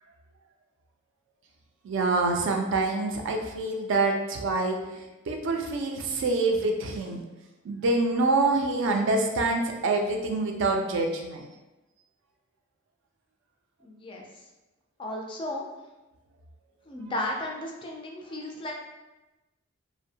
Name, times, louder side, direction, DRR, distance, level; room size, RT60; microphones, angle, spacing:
voice 1, 1.8-4.8 5.3-7.2 7.6-11.5, right 3 dB, 60° right, 2 dB, 0.4 m, -26 dB
voice 2, 13.8-14.3 15.0-15.7 16.9-18.7, left 1 dB, 25° left, 0 dB, 0.3 m, -34 dB
2.6 x 2.0 x 2.7 m, 1.0 s
head